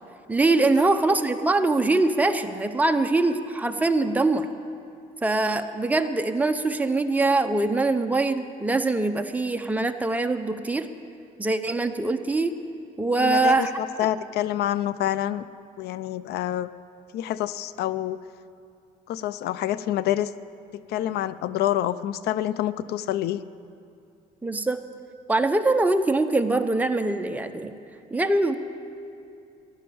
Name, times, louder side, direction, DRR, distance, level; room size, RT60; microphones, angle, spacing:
voice 1, 0.3-4.5 5.2-10.9 11.4-12.5 13.0-13.7 24.4-24.8 25.3-27.7 28.1-28.5, right 2 dB, 10° right, 6 dB, 0.8 m, -23 dB
voice 2, 13.2-15.5 15.8-16.7 17.1-18.2 19.1-20.3 20.9-23.4, left 12 dB, 75° left, 16 dB, 0.4 m, -27 dB
15.0 x 11.5 x 7.0 m, 2.5 s
cardioid pair, 110°, 17 cm